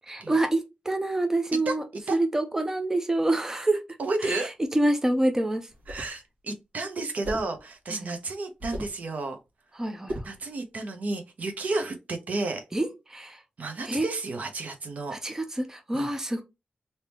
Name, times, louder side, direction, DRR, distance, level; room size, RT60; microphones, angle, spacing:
voice 1, 0.1-1.8 2.1-3.8 4.2-5.7 7.9-8.1 9.8-10.3 12.7-13.4 13.9-14.1 15.1-16.4, right 1 dB, 20° right, 0.7 m, -27 dB
voice 2, 4.0-4.5 5.9-9.4 10.2-12.6 13.6-15.2 15.9-16.1, right 3 dB, 70° right, 0.8 m, -32 dB
sound 1, 5.7-6.2 7.2-7.6 8.6-9.0 10.1-10.4, equal, 85° right, 1.5 m, -36 dB
3.4 x 2.9 x 2.9 m
wide cardioid pair, 100°, 3 cm